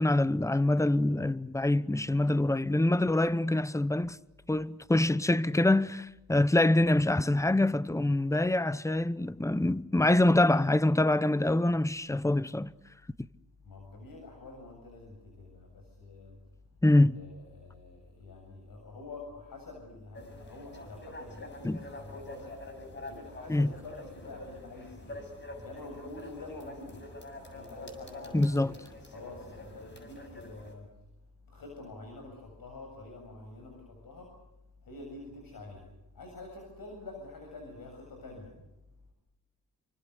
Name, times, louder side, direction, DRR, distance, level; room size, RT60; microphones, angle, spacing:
voice 1, 0.0-4.2 4.5-12.7 16.8-17.2 21.6-21.8 23.5-23.7 28.3-28.7, left 1 dB, 10° left, 0.9 m, -25 dB
voice 2, 13.6-16.4 17.1-22.5 23.1-25.2 25.6-27.0 27.5-28.7 29.1-30.9 31.5-34.3 34.8-35.9 36.1-38.5, left 2 dB, 65° left, 7.6 m, -47 dB
sound 1, 20.1-30.7, left 1 dB, 30° left, 7.1 m, -46 dB
28.5 x 25.0 x 6.7 m
cardioid pair, 85°, 36 cm